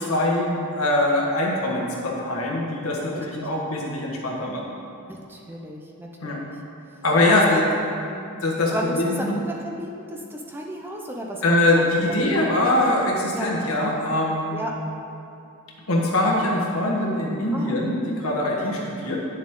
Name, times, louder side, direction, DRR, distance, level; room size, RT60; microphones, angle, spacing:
voice 1, 0.0-4.8 6.2-6.4 7.0-7.6 8.4-9.4 11.4-14.7 15.9-19.2, left 1 dB, 80° left, -2 dB, 1.5 m, -23 dB
voice 2, 3.1-3.5 5.1-6.5 7.3-7.4 8.0-8.4 8.7-12.1 13.3-13.6 14.5-14.7 17.5-17.8 18.6-18.8, equal, 10° right, 0 dB, 0.6 m, -33 dB
9.5 x 7.3 x 3.8 m, 2.7 s
head